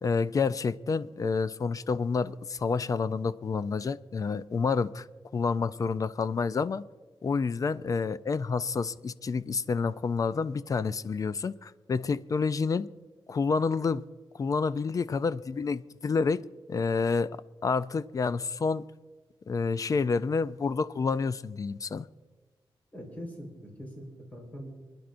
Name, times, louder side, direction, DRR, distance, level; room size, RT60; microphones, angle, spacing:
voice 1, 0.0-5.1 5.3-6.8 7.2-12.9 13.3-14.0 14.4-16.4 16.7-17.3 17.6-18.8 19.5-22.1, left 4 dB, 40° left, 0.3 m, -29 dB
voice 2, 22.9-24.7, equal, 15° left, 4.2 m, -42 dB
28.0 x 10.5 x 2.6 m
wide cardioid pair, 160°, 9 cm